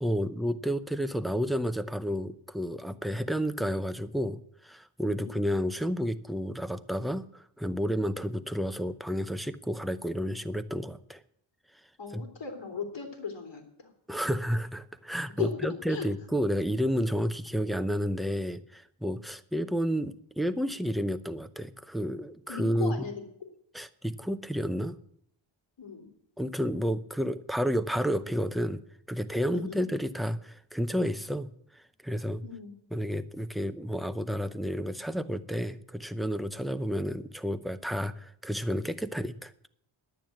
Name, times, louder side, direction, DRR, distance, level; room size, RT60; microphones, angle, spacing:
voice 1, 0.0-11.2 12.1-12.2 14.1-23.1 23.7-25.0 26.4-28.8 29.1-32.4 32.9-39.5, equal, ahead, 10 dB, 0.6 m, -31 dB
voice 2, 12.0-13.9 15.4-16.1 22.5-23.2 25.8-26.1 29.5-29.8 32.4-32.7, left 5 dB, 60° left, 3 dB, 3.2 m, -37 dB
10.5 x 9.2 x 7.6 m, 0.69 s
cardioid pair, 90°, 48 cm